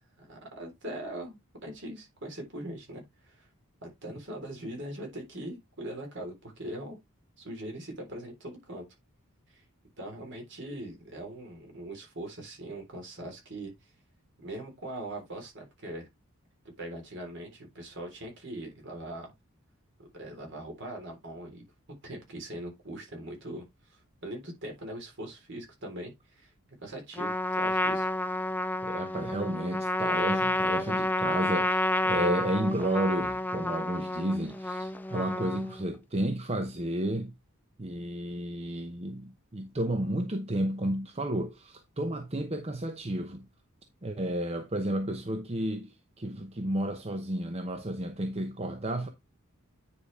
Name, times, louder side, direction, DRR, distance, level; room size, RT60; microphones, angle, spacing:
voice 1, 0.2-3.5 3.8-7.0 7.4-8.8 9.5-9.6 10.0-13.9 14.4-16.1 16.8-19.3 20.1-21.6 22.0-26.5 26.8-28.1, right 1 dB, 55° right, 3.7 m, -41 dB
Trumpet, 27.2-35.8, left 1 dB, 10° left, 0.5 m, -30 dB
voice 2, 28.8-37.3 37.8-43.5 44.0-49.1, right 1 dB, 30° right, 0.8 m, -32 dB
9.6 x 4.9 x 3.3 m
head